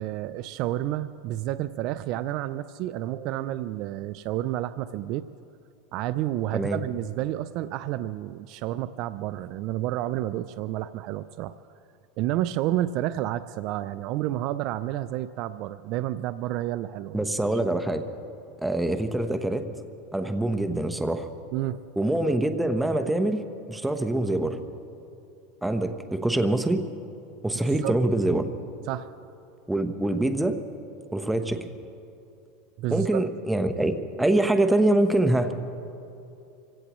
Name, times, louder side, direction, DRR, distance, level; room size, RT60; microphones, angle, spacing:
voice 1, 0.0-5.2 5.9-11.5 12.2-17.3 21.5-21.8 27.6-28.0 28.9-29.1 32.8-33.2, right 14 dB, 50° right, 14 dB, 0.4 m, -30 dB
voice 2, 17.1-18.0 18.6-19.7 20.1-21.3 22.0-23.4 23.7-24.6 25.6-26.8 27.4-28.5 29.7-30.6 31.1-31.7 32.9-35.5, right 1 dB, 5° right, 7 dB, 1.0 m, -24 dB
26.0 x 16.5 x 3.1 m, 2.7 s
supercardioid pair, 130°, 0 cm